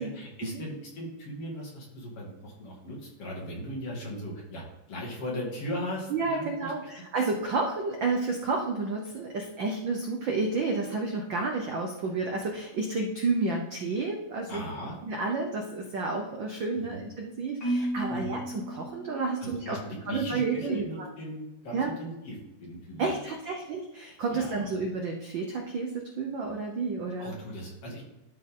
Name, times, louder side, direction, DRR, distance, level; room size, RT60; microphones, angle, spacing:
voice 1, 0.0-6.9 14.5-15.0 16.9-17.0 18.1-18.4 19.4-23.1 24.3-24.7 27.2-28.0, equal, 55° left, -3 dB, 3.2 m, -38 dB
voice 2, 6.1-14.6 15.0-19.8 20.1-21.1 21.7-21.9 23.0-27.3, right 3 dB, 75° right, 2 dB, 1.0 m, -30 dB
Marimba xylophone, 17.6-19.8, right 1 dB, 25° left, 2.7 m, -33 dB
12.5 x 4.6 x 3.7 m, 1.0 s
omnidirectional pair, 3.3 m